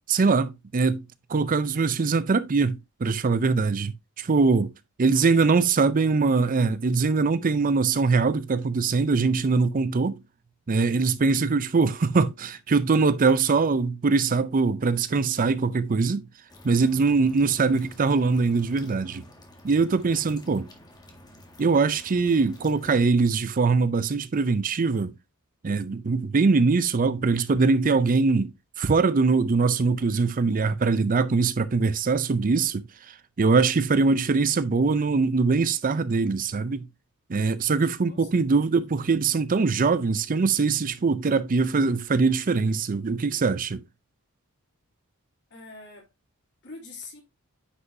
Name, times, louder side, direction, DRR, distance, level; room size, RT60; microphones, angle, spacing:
voice 1, 0.1-1.0 1.3-4.7 5.0-10.2 10.7-16.3 16.6-19.2 19.6-20.7 21.6-25.1 25.6-36.9 37.3-43.8, right 4 dB, 40° right, 0.5 m, -22 dB
voice 2, 5.1-5.7 38.1-38.9 45.5-46.1 46.6-47.2, left 3 dB, 55° left, 3.1 m, -46 dB
sound 1, 16.5-23.0, left 1 dB, 20° left, 1.8 m, -50 dB
9.7 x 5.5 x 2.6 m
head